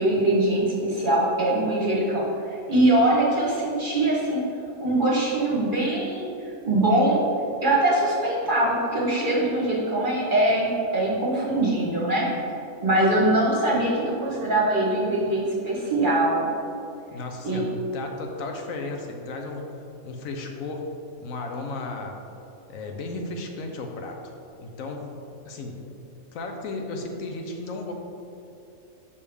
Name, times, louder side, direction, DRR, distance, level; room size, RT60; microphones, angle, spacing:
voice 1, 0.0-2.2 2.5-4.4 4.8-6.3 6.6-7.2 7.6-12.3 12.8-16.5 17.4-17.6, right 1 dB, 40° right, -4 dB, 1.1 m, -22 dB
voice 2, 17.1-19.7 20.0-20.9 21.2-22.2 22.7-24.2 24.6-25.1 25.4-25.8 26.3-27.9, left 3 dB, 80° left, 3 dB, 1.1 m, -34 dB
6.5 x 5.4 x 3.4 m, 2.8 s
omnidirectional pair, 1.4 m